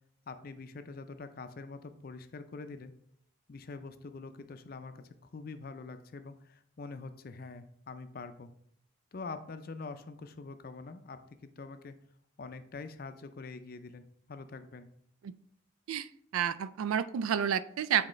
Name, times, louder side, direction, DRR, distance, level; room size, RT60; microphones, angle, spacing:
voice 1, 0.3-2.9 3.5-8.5 9.1-11.9 12.4-14.0 14.3-14.9, left 3 dB, 45° left, 10 dB, 0.4 m, -45 dB
voice 2, 16.3-18.1, right 8 dB, 85° right, 16 dB, 0.3 m, -30 dB
7.6 x 4.1 x 3.1 m, 0.69 s
head